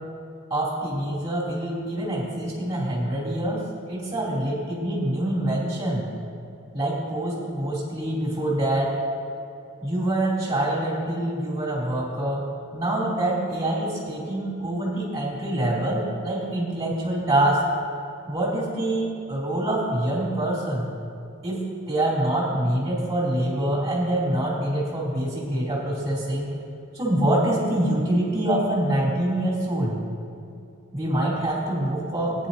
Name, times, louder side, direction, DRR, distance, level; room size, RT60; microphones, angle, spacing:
voice 1, 0.5-6.1 6.7-9.0 9.8-12.4 12.7-17.6 18.3-20.9 21.4-26.5 26.9-30.0 30.9-32.5, right 1 dB, 15° right, -7 dB, 2.9 m, -25 dB
17.0 x 9.7 x 2.8 m, 2.7 s
head